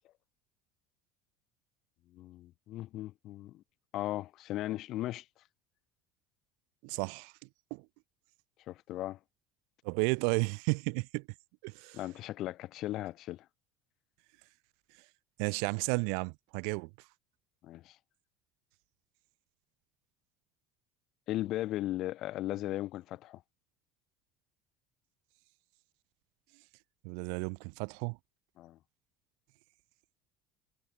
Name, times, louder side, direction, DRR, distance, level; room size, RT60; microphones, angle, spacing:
voice 1, 2.1-3.6 3.9-5.2 8.7-9.2 11.9-13.5 17.6-18.0 21.3-23.4 28.6-28.8, left 15 dB, 50° left, 0.5 m, -37 dB
voice 2, 6.8-7.3 7.7-7.8 9.8-11.3 11.6-12.0 15.4-16.9 27.0-28.2, right 40 dB or more, 80° right, 0.3 m, -33 dB
cardioid pair, 150°, 0 cm